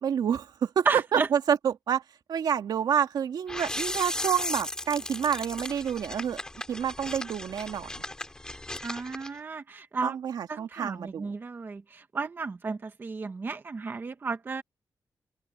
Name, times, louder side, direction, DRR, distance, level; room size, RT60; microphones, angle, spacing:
voice 1, 0.0-2.0 2.3-6.4 6.7-8.0 10.0-11.3, right 8 dB, 75° right, 2.2 m, -28 dB
voice 2, 0.9-1.3 8.8-10.2 10.5-14.6, right 4 dB, 30° right, 1.1 m, -33 dB
sound 1, 3.5-9.3, left 1 dB, 10° left, 2.5 m, -36 dB
open air
wide cardioid pair, 175°, 7 cm